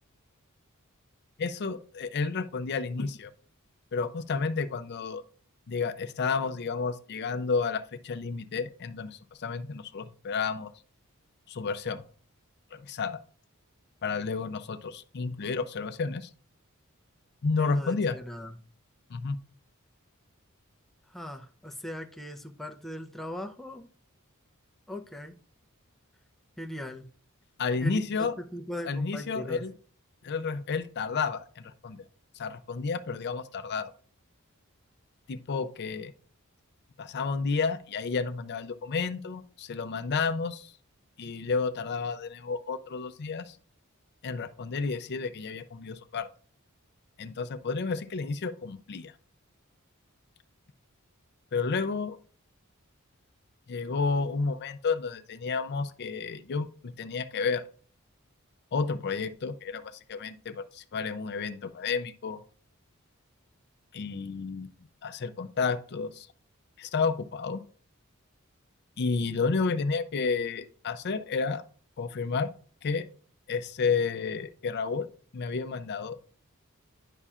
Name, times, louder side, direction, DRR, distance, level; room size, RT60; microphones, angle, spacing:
voice 1, 1.4-3.3 3.9-5.2 5.7-10.7 11.5-12.0 12.7-13.2 14.0-16.3 17.4-18.2 19.1-19.4 27.6-28.4 28.9-29.7 30.2-32.1 32.3-33.9 35.3-36.1 37.0-40.7 41.2-43.6 44.2-46.3 47.2-49.1 51.5-52.2 53.7-56.7 57.0-57.6 58.7-62.4 63.9-64.7 65.0-66.3 66.8-67.6 69.0-71.6 72.0-72.5 72.8-73.1 73.5-75.1 75.3-76.2, left 4 dB, 50° left, 11 dB, 0.5 m, -31 dB
voice 2, 17.6-18.5 21.1-23.9 24.9-25.4 26.6-27.1 27.8-29.6, left 1 dB, ahead, 3 dB, 0.5 m, -39 dB
9.9 x 5.5 x 2.4 m, 0.43 s
head